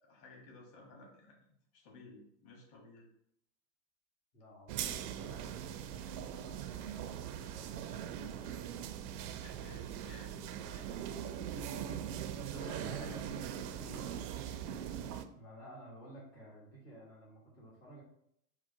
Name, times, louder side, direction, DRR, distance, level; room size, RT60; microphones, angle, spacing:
voice 1, 0.0-1.4 1.7-3.1 9.4-11.0 12.5-13.2 13.8-14.3, left 2 dB, 65° left, 0 dB, 1.6 m, -54 dB
voice 2, 4.3-8.5 11.6-12.1 12.8-13.2 14.5-14.6 15.4-18.0, equal, 85° left, -7 dB, 1.9 m, -54 dB
sound 1, 4.7-15.3, right 9 dB, 75° right, 0.6 m, -41 dB
sound 2, 9.3-14.6, right 7 dB, 30° right, 0.4 m, -57 dB
5.0 x 2.4 x 4.4 m, 0.73 s
hypercardioid pair, 95°, 47 cm